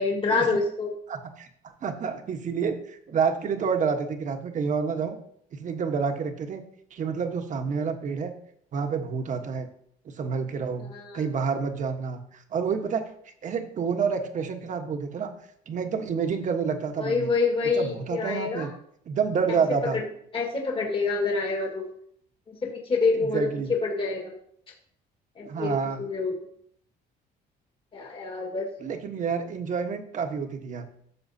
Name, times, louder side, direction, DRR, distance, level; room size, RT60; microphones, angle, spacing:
voice 1, 0.0-0.9 10.8-11.2 17.0-18.7 19.5-19.6 19.9-20.0 20.3-21.9 22.5-24.3 25.3-25.7 26.0-26.3 27.9-28.7, left 4 dB, 30° left, 0 dB, 1.8 m, -27 dB
voice 2, 1.1-1.5 1.8-5.2 5.5-6.6 6.9-8.3 8.7-9.7 10.2-13.0 13.4-15.3 15.7-17.3 17.7-18.7 19.1-20.0 23.1-23.7 25.4-26.0 28.8-30.8, right 6 dB, 50° right, 6 dB, 1.3 m, -28 dB
13.5 x 7.0 x 2.8 m, 0.66 s
cardioid pair, 110°, 17 cm